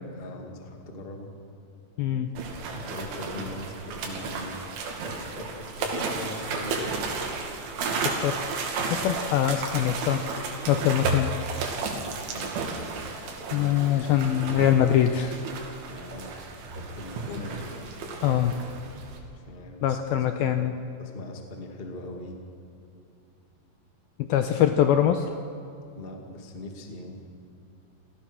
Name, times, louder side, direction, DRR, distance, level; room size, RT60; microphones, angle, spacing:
voice 1, 0.2-1.3 2.7-4.7 5.0-7.0 11.6-12.6 15.8-16.3 16.7-17.7 19.3-20.0 20.4-20.7 21.0-22.4 25.9-27.4, left 2 dB, 25° left, 2 dB, 1.1 m, -41 dB
voice 2, 2.0-2.3 8.0-8.6 8.9-10.3 10.7-11.3 13.5-15.4 17.4-17.5 18.2-18.6 19.8-20.7 24.2-25.3, left 10 dB, 90° left, 7 dB, 2.1 m, -23 dB
sound 1, 2.4-19.2, right 4 dB, 90° right, 4.9 m, -33 dB
28.5 x 17.0 x 6.4 m, 2.7 s
omnidirectional pair, 5.2 m